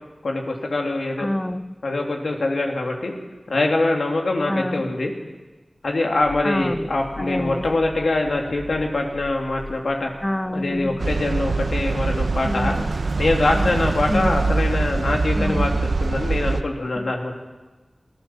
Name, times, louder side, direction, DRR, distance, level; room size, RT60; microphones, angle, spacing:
voice 1, 0.2-1.3 1.8-3.1 3.5-5.1 5.8-10.1 10.5-12.8 13.2-15.7 16.0-17.3, left 2 dB, 85° left, 1 dB, 3.1 m, -23 dB
voice 2, 1.2-1.7 4.5-4.8 6.4-6.9 7.2-7.6 10.2-11.0 12.4-12.9 13.5-13.7 14.1-14.5 15.4-15.7 17.0-17.1, left 1 dB, 15° left, 12 dB, 0.6 m, -27 dB
sound 1, 5.8-11.7 12.2-12.5 13.7-14.0 15.1-15.5, left 2 dB, 35° left, 3.2 m, -42 dB
sound 2, 11.0-16.6, right 3 dB, 80° right, 0.8 m, -23 dB
25.0 x 14.5 x 7.4 m, 1.2 s
wide cardioid pair, 45°, 0 cm